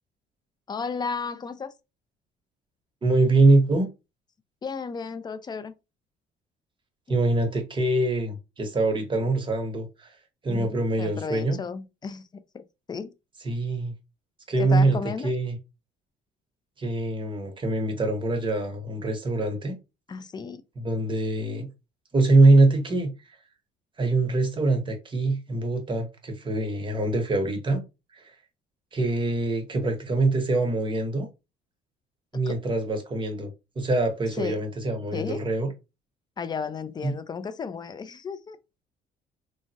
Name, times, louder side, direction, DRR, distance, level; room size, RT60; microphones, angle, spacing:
voice 1, 0.7-1.7 4.6-5.7 10.5-10.7 11.0-13.1 14.6-15.3 20.1-20.6 32.5-32.6 34.4-34.6 35.1-35.4 36.4-38.6, left 5 dB, 25° left, 0.4 m, -33 dB
voice 2, 3.0-3.9 7.1-10.1 10.4-11.6 13.4-13.9 14.5-15.0 15.2-15.6 16.8-19.7 20.8-21.7 22.1-23.1 24.0-27.8 28.1-28.4 28.9-31.3 32.3-33.5 33.8-35.7 37.0-37.1, right 2 dB, 30° right, 0.8 m, -23 dB
3.4 x 2.0 x 2.6 m
cardioid pair, 110°, 17 cm